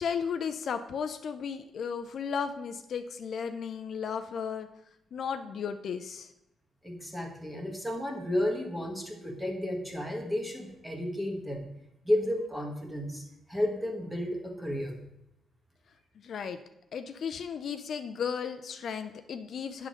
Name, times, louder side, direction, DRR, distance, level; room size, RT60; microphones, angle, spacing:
voice 1, 0.0-4.7 5.1-6.3 16.2-16.6 16.9-19.9, left 6 dB, 60° left, 8 dB, 0.5 m, -34 dB
voice 2, 6.8-11.7 12.0-15.0, left 1 dB, 5° right, 1 dB, 1.5 m, -32 dB
9.3 x 3.8 x 6.3 m, 0.86 s
cardioid pair, 120°, 0 cm